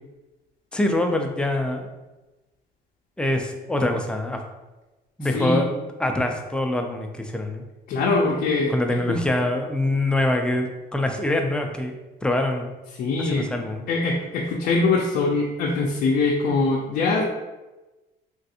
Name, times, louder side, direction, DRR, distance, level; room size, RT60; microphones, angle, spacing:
voice 1, 0.7-1.9 3.2-4.4 5.2-7.6 8.7-11.9 12.2-12.7 13.2-13.8, left 1 dB, 5° left, 3 dB, 0.3 m, -24 dB
voice 2, 5.3-5.6 7.9-9.2 13.0-13.5 13.9-17.2, left 3 dB, 65° left, -2 dB, 0.5 m, -23 dB
3.1 x 2.5 x 2.7 m, 1.1 s
cardioid pair, 110°, 17 cm